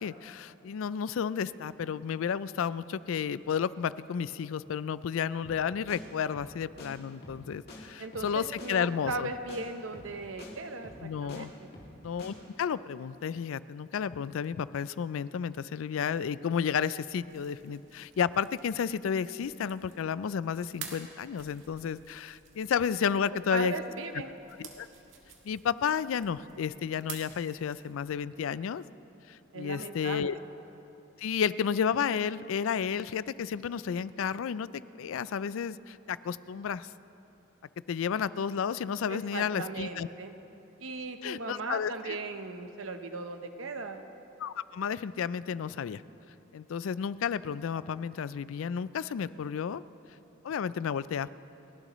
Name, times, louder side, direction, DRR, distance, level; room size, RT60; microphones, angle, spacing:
voice 1, 0.0-9.3 11.0-11.5 12.0-23.7 24.6-24.9 25.4-28.8 29.3-30.3 31.2-34.7 34.9-36.9 37.9-40.1 41.2-42.2 44.4-46.0 46.5-49.8 50.4-51.3, left 7 dB, 85° left, 17 dB, 0.4 m, -32 dB
sound 1, 5.4-5.6 5.9-6.0 6.3-6.5 6.8-6.9 7.2-7.4 7.7-7.8 8.1-8.3 8.6-8.7 9.0-9.2 9.5-9.6 9.9-10.1 10.4-10.5 10.8-11.4 11.7-11.9 12.2-12.3, left 1 dB, 50° left, 2.5 m, -47 dB
voice 2, 8.0-11.7 23.5-24.3 29.5-30.4 39.1-40.3 40.8-44.0, right 3 dB, 90° right, 7 dB, 0.9 m, -37 dB
sound 2, 17.1-28.2, right 7 dB, 75° right, 1.7 m, -51 dB
30.0 x 12.0 x 3.1 m, 2.9 s
head